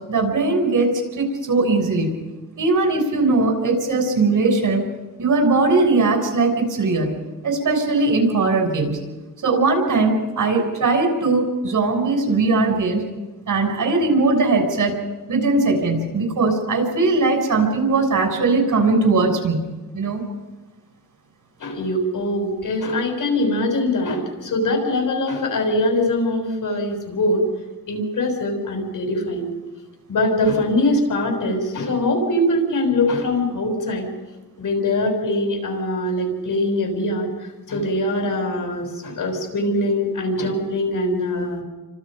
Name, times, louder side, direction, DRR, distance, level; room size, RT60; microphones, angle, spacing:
voice 1, 0.1-2.2 2.6-4.8 5.2-7.1 7.4-9.0 9.4-13.0 13.5-15.0 15.3-19.6 19.9-20.2, right 3 dB, 70° right, 3 dB, 6.7 m, -19 dB
voice 2, 21.6-27.4 27.9-29.5 30.1-34.1 34.6-41.6, left 1 dB, 70° left, 3 dB, 6.8 m, -22 dB
30.0 x 25.5 x 5.3 m, 1.2 s
wide cardioid pair, 130°, 33 cm